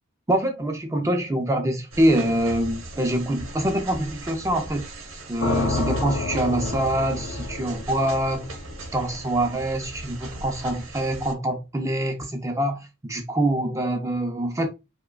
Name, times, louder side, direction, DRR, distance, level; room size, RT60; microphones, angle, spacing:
voice 1, 0.3-4.9 5.3-8.5 8.9-14.7, right 1 dB, 15° right, 0.4 m, -25 dB
sound 1, 1.9-11.3, right 2 dB, 75° right, 0.9 m, -39 dB
sound 2, 5.4-9.5, left 2 dB, 75° left, 1.0 m, -29 dB
4.7 x 2.1 x 2.2 m
head